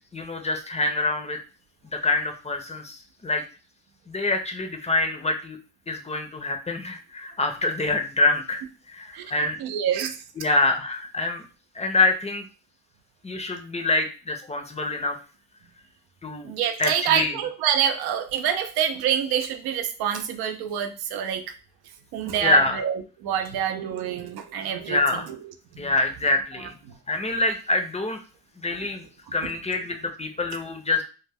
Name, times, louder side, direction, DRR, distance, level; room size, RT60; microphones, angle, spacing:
voice 1, 0.1-1.4 1.9-3.4 4.1-5.6 5.9-8.6 8.9-9.6 10.4-11.4 11.8-12.5 13.2-15.2 16.2-16.5 16.8-17.4 22.4-22.8 24.9-25.3 25.8-26.7 27.1-28.2 28.6-29.1 29.3-31.0, left 3 dB, 20° left, 5 dB, 0.5 m, -25 dB
voice 2, 9.6-10.2 16.4-21.4 22.1-25.9 26.9-27.0 27.3-27.4 28.7-28.9, right 9 dB, 75° right, 8 dB, 0.5 m, -27 dB
2.3 x 2.1 x 3.3 m, 0.35 s
cardioid pair, 70°, 37 cm